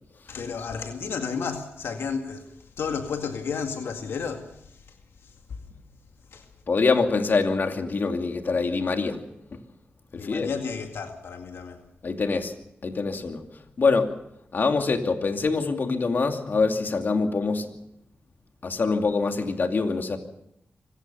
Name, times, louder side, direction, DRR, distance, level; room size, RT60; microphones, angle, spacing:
voice 1, 0.1-5.6 6.3-6.5 10.1-11.8, left 5 dB, 80° left, 2.1 m, -33 dB
voice 2, 6.7-9.2 10.2-10.5 12.0-12.5 12.8-13.4 13.8-14.1 14.5-17.7 18.6-20.2, left 4 dB, 55° left, 2.6 m, -24 dB
25.0 x 16.5 x 7.0 m
cardioid pair, 70°, 4 cm